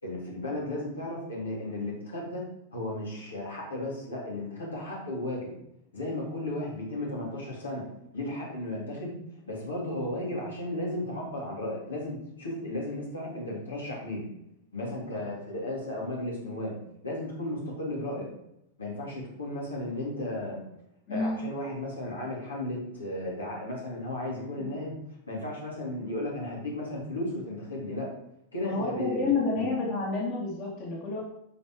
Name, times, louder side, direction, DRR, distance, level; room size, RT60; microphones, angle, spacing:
voice 1, 0.0-2.4 2.7-5.5 5.9-7.8 8.1-9.1 9.5-14.2 14.7-16.8 17.0-18.3 18.8-20.6 21.1-24.9 25.3-28.1 28.5-29.7, left 1 dB, 75° left, -4 dB, 3.7 m, -34 dB
voice 2, 21.1-21.4 24.6-24.7 28.6-31.2, left 3 dB, 40° left, -3 dB, 3.0 m, -29 dB
12.5 x 5.1 x 4.9 m, 0.80 s
figure-of-eight pair, 90°, 0 cm